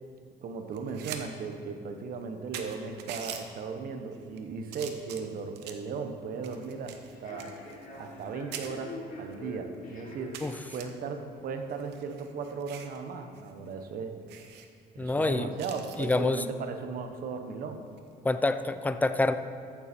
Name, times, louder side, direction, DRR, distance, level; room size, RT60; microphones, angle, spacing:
voice 1, 0.4-7.6 8.0-10.4 10.7-14.2 14.9-17.8, right 5 dB, 60° right, 6 dB, 1.1 m, -37 dB
sound 1, 0.7-1.2 1.6-1.7 2.2-2.3 2.5-3.4 4.1-4.4 4.7-5.9 6.4-8.3 8.5-8.7 9.3-9.4 9.7-9.8 10.3-10.8 11.7-13.0 13.3-13.5 13.8-13.9 14.3-14.7 15.6-16.2 17.9-18.1, right 9 dB, 85° right, 0.9 m, -43 dB
Human voice / Subway metro underground, 6.3-11.8, left 1 dB, 55° left, 2.6 m, -46 dB
voice 2, 15.0-15.5 16.0-16.4 18.2-19.3, left 2 dB, 10° left, 10 dB, 0.5 m, -26 dB
14.0 x 7.0 x 4.4 m, 2.4 s
cardioid pair, 110°, 17 cm